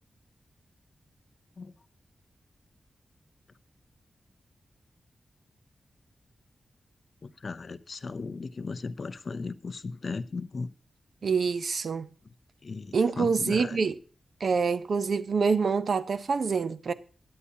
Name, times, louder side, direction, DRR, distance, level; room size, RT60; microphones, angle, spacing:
voice 1, 7.2-10.7 12.6-13.9, left 4 dB, 45° left, 0.5 m, -36 dB
voice 2, 11.2-12.1 12.9-14.0 14.4-16.9, right 5 dB, 60° right, 0.7 m, -26 dB
16.5 x 9.7 x 2.8 m
wide cardioid pair, 170°, 0 cm